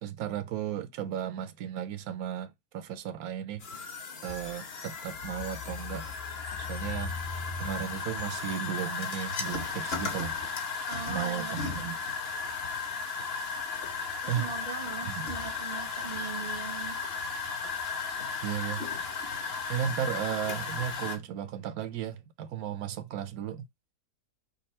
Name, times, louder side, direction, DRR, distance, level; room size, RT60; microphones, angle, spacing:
voice 1, 0.0-3.6 4.2-6.1 6.6-7.2 7.6-10.4 11.1-12.0 14.3-14.5 15.0-15.3 18.4-18.9 19.7-23.7, right 10 dB, 75° right, 1.1 m, -35 dB
sound 1, 3.6-21.2, left 5 dB, 50° left, 1.0 m, -35 dB
voice 2, 10.9-11.5 12.7-12.8 14.2-17.0, right 6 dB, 40° right, 0.6 m, -40 dB
5.4 x 2.3 x 4.1 m
omnidirectional pair, 1.6 m